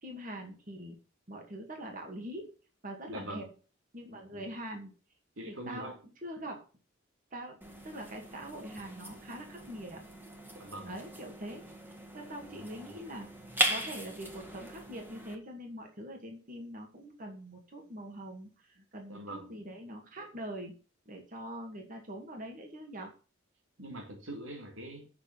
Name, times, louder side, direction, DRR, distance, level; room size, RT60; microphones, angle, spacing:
voice 1, 0.0-1.0 1.3-2.5 2.8-3.5 3.9-4.9 5.5-5.9 6.2-6.6 7.3-10.0 10.8-13.3 13.7-20.7 21.1-23.1, right 1 dB, 40° right, 2.2 m, -43 dB
voice 2, 3.1-3.5 5.4-5.9 10.5-10.9 19.1-19.5 23.8-25.1, right 1 dB, 85° right, 3.0 m, -43 dB
sound 1, 7.6-15.4, right 1 dB, 10° right, 1.7 m, -38 dB
8.2 x 6.3 x 6.9 m
head